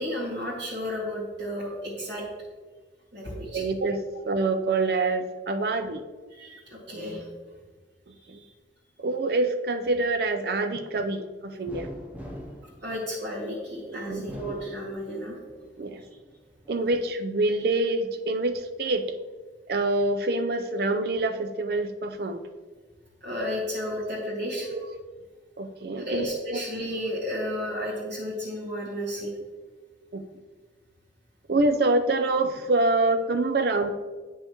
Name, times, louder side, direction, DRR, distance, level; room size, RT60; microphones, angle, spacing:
voice 1, 0.0-2.3 3.1-3.6 6.3-7.3 8.1-8.5 12.8-15.3 23.2-24.7 26.0-29.3, equal, 80° right, -7 dB, 1.8 m, -33 dB
voice 2, 3.5-6.0 8.3-8.4 9.0-11.9 13.8-14.4 15.8-16.0 16.7-19.0 19.7-22.4 24.7-24.9 25.6-26.6 29.2-29.4 30.1-30.2 31.5-33.9, right 2 dB, 60° right, 7 dB, 0.5 m, -26 dB
sound 1, 11.7-13.6 14.1-15.5 15.9-16.8, equal, 10° right, 0.7 m, -42 dB
8.6 x 5.5 x 3.0 m, 1.4 s
head